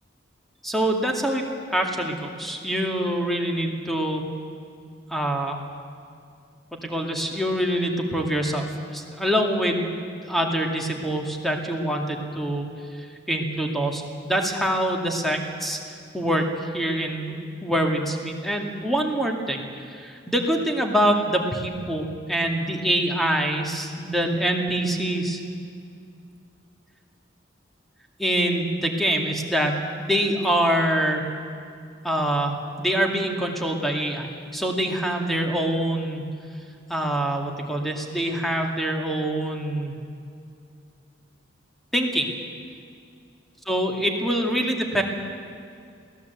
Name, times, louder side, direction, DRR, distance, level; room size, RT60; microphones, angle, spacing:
voice 1, 0.6-4.2 5.1-5.6 6.8-8.7 8.9-9.9 10.2-12.7 13.0-15.8 16.1-16.4 16.7-19.6 19.9-25.4 28.2-31.2 32.0-34.3 34.5-36.3 36.9-40.0 41.9-42.3 43.7-45.0, right 1 dB, ahead, 2 dB, 2.2 m, -25 dB
23.0 x 17.0 x 8.2 m, 2.4 s
head